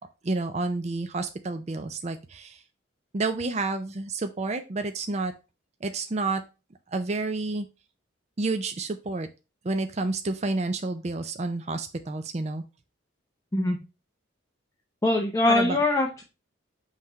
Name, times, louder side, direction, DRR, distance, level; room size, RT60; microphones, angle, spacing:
voice 1, 0.2-2.6 3.1-5.3 5.8-6.4 6.9-7.7 8.4-9.3 9.6-12.6 15.5-15.8, right 3 dB, 35° right, 7 dB, 0.4 m, -29 dB
voice 2, 15.0-16.2, left 2 dB, 15° left, 1 dB, 0.8 m, -23 dB
5.7 x 3.2 x 5.3 m, 0.29 s
head